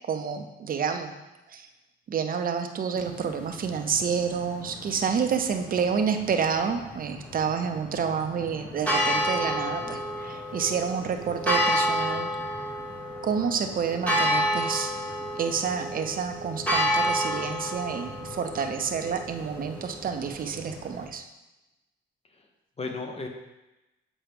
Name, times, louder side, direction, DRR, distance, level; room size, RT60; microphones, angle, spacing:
voice 1, 0.1-1.1 1.5-1.7 2.1-12.3 13.2-14.9 15.4-21.2, right 6 dB, 45° right, 6 dB, 0.7 m, -29 dB
sound 1, 3.0-21.1, equal, 5° left, 1.4 m, -31 dB
voice 2, 8.4-8.8 22.3-22.5 22.8-23.3, left 3 dB, 30° left, 3 dB, 1.0 m, -37 dB
7.3 x 4.4 x 3.5 m, 1.0 s
cardioid pair, 90°, 20 cm